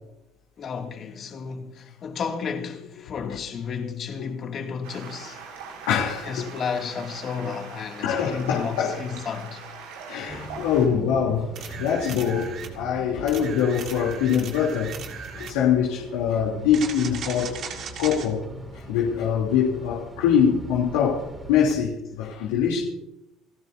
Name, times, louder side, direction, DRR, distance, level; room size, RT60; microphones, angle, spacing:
voice 1, 0.6-5.4 6.2-9.6, left 6 dB, 45° left, 2.6 m, -32 dB
Stream, 4.8-10.9, right 6 dB, 90° right, 6.4 m, -41 dB
voice 2, 5.9-6.4 8.0-8.9 10.1-14.9 15.3-18.4 18.7-22.8, left 8 dB, 90° left, 3.2 m, -24 dB
sound 1, 10.3-21.7, right 1 dB, 20° right, 4.5 m, -42 dB
sound 2, 11.6-12.8 13.3-15.6 16.7-18.3 21.7-21.8, right 7 dB, 50° right, 2.2 m, -37 dB
28.5 x 13.5 x 2.8 m
supercardioid pair, 105°, 0 cm